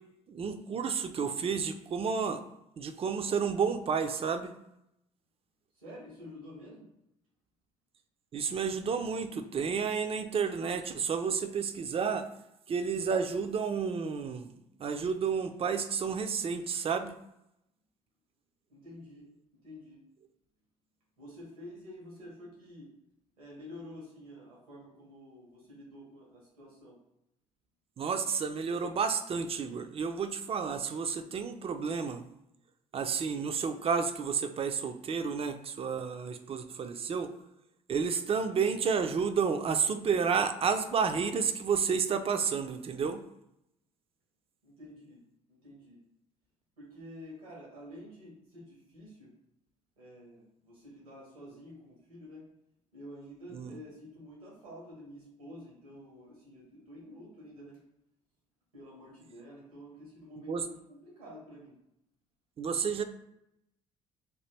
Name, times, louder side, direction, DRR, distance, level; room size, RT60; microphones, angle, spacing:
voice 1, 0.3-2.4 2.8-4.5 8.3-12.3 12.7-14.5 14.8-17.1 28.0-32.2 32.9-37.3 37.9-43.2 53.5-53.8 60.5-60.7 62.6-63.0, right 6 dB, 35° right, 9 dB, 0.4 m, -31 dB
voice 2, 5.7-6.9 18.7-19.3 19.6-20.0 21.2-22.9 23.4-27.0 44.6-45.2 45.5-46.0 46.8-49.3 50.0-52.5 52.9-57.8 58.7-61.7, left 1 dB, 90° right, -5 dB, 1.3 m, -49 dB
3.0 x 2.2 x 3.3 m, 0.83 s
hypercardioid pair, 60°, 18 cm